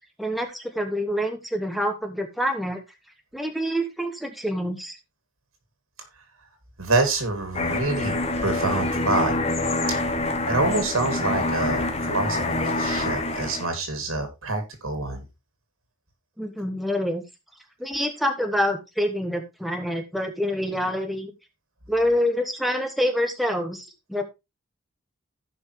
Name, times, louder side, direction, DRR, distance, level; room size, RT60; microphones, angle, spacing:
voice 1, 0.2-2.8 3.3-5.0 16.4-17.2 17.8-21.3 21.9-24.2, equal, ahead, 4 dB, 1.2 m, -26 dB
voice 2, 6.8-8.2 8.4-9.3 9.9-10.0 10.5-15.2, right 2 dB, 80° right, 7 dB, 2.7 m, -26 dB
sound 1, 7.5-13.7, left 2 dB, 30° left, 1.1 m, -26 dB
15.5 x 5.4 x 3.2 m, 0.23 s
head